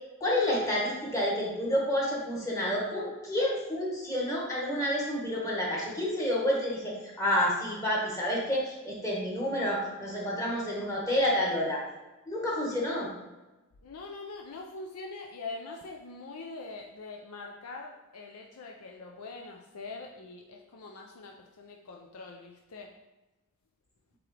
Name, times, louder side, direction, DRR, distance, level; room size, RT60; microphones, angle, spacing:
voice 1, 0.2-11.8 12.3-13.1, left 1 dB, 15° left, -4 dB, 1.6 m, -29 dB
voice 2, 13.8-22.9, left 3 dB, 70° left, 2 dB, 0.5 m, -43 dB
7.6 x 3.8 x 3.3 m, 1.1 s
head